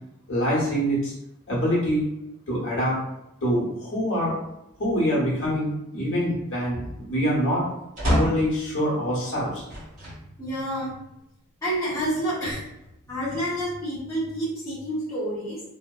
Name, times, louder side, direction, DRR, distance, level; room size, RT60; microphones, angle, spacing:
voice 1, 0.3-1.1 1.5-2.0 2.5-3.0 3.4-4.3 4.8-7.6 8.2-9.6, equal, 60° left, -5 dB, 0.9 m, -25 dB
sound 1, 8.0-8.6 9.7-10.2 10.9-11.0 12.2-13.0, equal, 35° right, 1.4 m, -27 dB
voice 2, 10.4-11.0 11.6-12.6 13.0-15.6, right 1 dB, 15° left, -10 dB, 0.7 m, -28 dB
2.7 x 2.0 x 2.3 m, 0.84 s
head